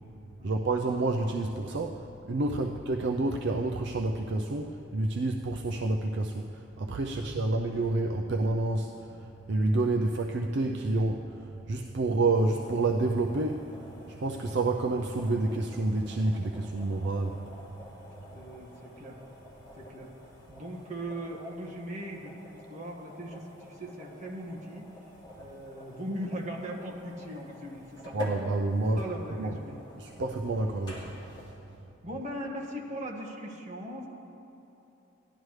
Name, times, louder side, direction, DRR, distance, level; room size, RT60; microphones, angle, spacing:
voice 1, 0.4-17.5 28.1-29.0 29.4-29.5 30.0-31.5, right 2 dB, 60° right, 2 dB, 0.5 m, -29 dB
sound 1, 12.3-31.5, left 1 dB, 25° left, 2.8 m, -48 dB
voice 2, 18.3-19.2 19.8-20.1 20.5-24.8 25.3-28.2 29.0-29.8 32.0-34.1, equal, 40° right, -2 dB, 1.6 m, -39 dB
17.0 x 11.5 x 3.2 m, 3.0 s
head